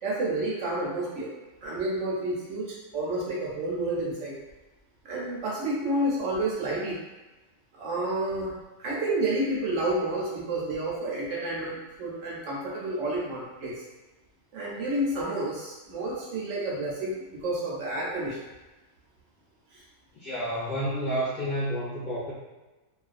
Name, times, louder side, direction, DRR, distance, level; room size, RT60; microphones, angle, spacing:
voice 1, 0.0-1.3 1.6-4.3 5.0-7.0 7.7-8.5 8.8-13.8 14.5-18.4 19.7-19.8, right 1 dB, 65° right, -5 dB, 0.8 m, -30 dB
voice 2, 20.2-22.3, equal, 50° left, -10 dB, 0.6 m, -30 dB
2.4 x 2.2 x 2.4 m, 1.1 s
omnidirectional pair, 1.5 m